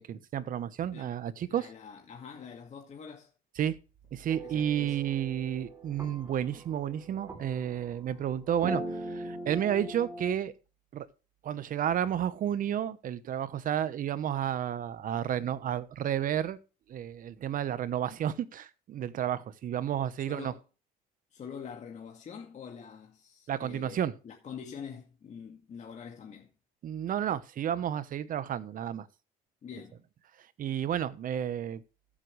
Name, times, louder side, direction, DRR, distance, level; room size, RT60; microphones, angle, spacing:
voice 1, 0.0-1.7 3.6-3.8 4.1-10.5 10.9-11.1 11.4-16.6 16.9-20.5 23.5-24.1 26.8-29.1 30.6-31.8, right 10 dB, 55° right, 1.1 m, -31 dB
voice 2, 1.5-3.3 4.4-5.0 20.3-20.6 21.3-26.5 29.6-30.0, left 7 dB, 45° left, 2.1 m, -45 dB
sound 1, 4.3-10.3, right 1 dB, 15° right, 3.2 m, -41 dB
14.5 x 7.6 x 3.3 m
cardioid pair, 110°, 17 cm